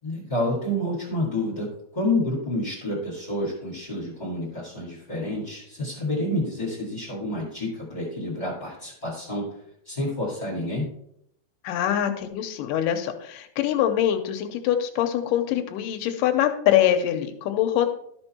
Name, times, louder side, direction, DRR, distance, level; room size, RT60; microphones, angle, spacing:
voice 1, 0.0-10.9, left 1 dB, 15° left, -7 dB, 1.8 m, -29 dB
voice 2, 11.6-17.9, left 11 dB, 90° left, 5 dB, 2.4 m, -24 dB
13.0 x 4.4 x 4.3 m, 0.72 s
omnidirectional pair, 3.8 m